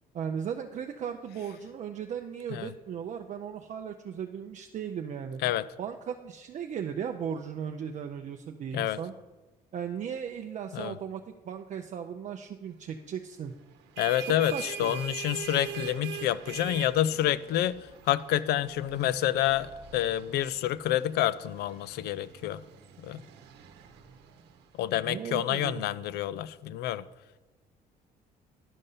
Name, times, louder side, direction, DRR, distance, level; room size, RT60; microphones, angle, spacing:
voice 1, 0.1-5.4 5.8-9.1 9.7-13.5 14.2-15.0 25.1-25.8, right 8 dB, 45° right, 4 dB, 0.5 m, -37 dB
sound 1, 13.7-25.0, right 10 dB, 80° right, 0.9 m, -44 dB
voice 2, 14.0-22.6 23.0-23.2 24.8-27.0, left 12 dB, 75° left, 18 dB, 0.4 m, -28 dB
11.0 x 5.3 x 5.5 m, 1.2 s
cardioid pair, 110°, 17 cm